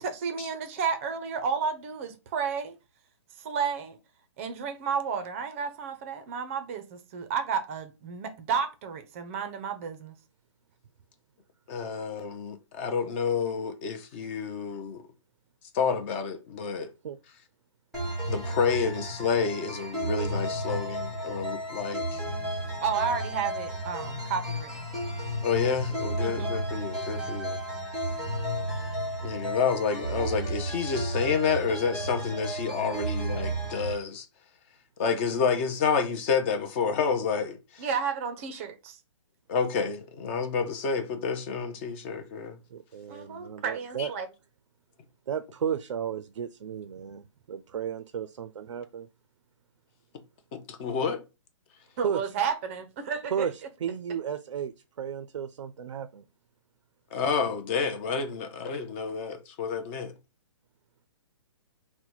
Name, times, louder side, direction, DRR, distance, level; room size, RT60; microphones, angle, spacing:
voice 1, 0.0-2.8 3.4-4.0 4.4-10.2 22.8-24.9 26.2-26.5 37.8-39.0 43.1-44.3 52.0-53.5, right 6 dB, 25° right, 0.5 m, -32 dB
voice 2, 11.7-15.1 15.7-16.9 18.3-22.3 25.4-27.6 29.2-34.3 35.0-37.8 39.5-42.6 44.0-44.1 50.5-51.2 57.1-60.1, left 5 dB, 25° left, 0.5 m, -29 dB
sound 1, 17.9-33.9, right 1 dB, ahead, 1.1 m, -33 dB
voice 3, 42.7-44.1 45.3-49.1 52.0-52.2 53.3-53.5 53.8-56.2, right 8 dB, 80° right, 0.4 m, -33 dB
3.9 x 2.1 x 4.5 m
hypercardioid pair, 160°, 16 cm